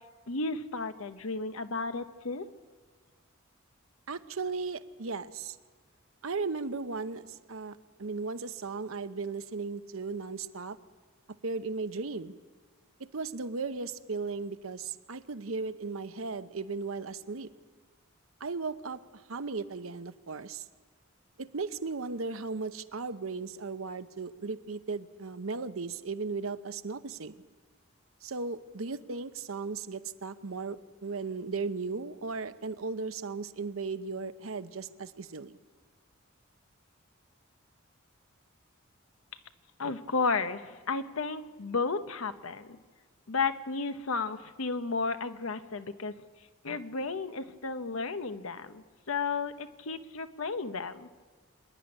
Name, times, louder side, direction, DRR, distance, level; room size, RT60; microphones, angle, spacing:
voice 1, 0.3-2.4 39.8-42.8 43.3-46.1 46.6-51.1, left 4 dB, 80° left, 10 dB, 1.0 m, -33 dB
voice 2, 4.1-5.6 6.2-10.8 11.4-12.3 13.0-17.5 18.4-19.0 19.3-20.7 21.4-27.3 28.2-35.6, right 4 dB, 75° right, 11 dB, 0.8 m, -36 dB
25.5 x 10.5 x 9.8 m, 1.5 s
head